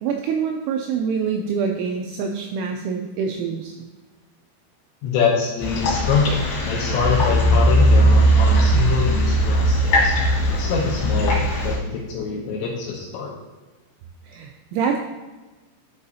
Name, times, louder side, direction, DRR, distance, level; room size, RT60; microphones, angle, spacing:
voice 1, 0.0-3.7 14.3-15.0, right 6 dB, 85° right, 3 dB, 2.7 m, -25 dB
voice 2, 5.0-10.2 10.5-13.3, left 5 dB, 80° left, -2 dB, 2.7 m, -24 dB
sound 1, 5.6-11.8, equal, 60° left, 3.5 m, -18 dB
11.0 x 4.8 x 2.7 m, 1.2 s
omnidirectional pair, 6.0 m